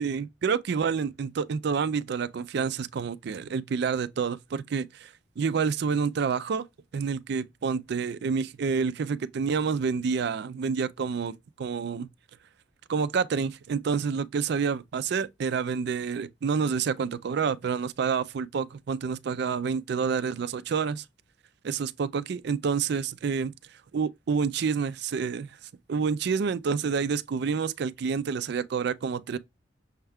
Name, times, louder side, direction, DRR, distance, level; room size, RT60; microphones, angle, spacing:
voice 1, 0.0-5.1 5.4-6.7 6.9-12.1 12.9-21.0 21.6-23.5 23.9-25.5 25.9-29.4, right 5 dB, 55° right, 0.4 m, -28 dB
6.3 x 2.2 x 3.4 m
head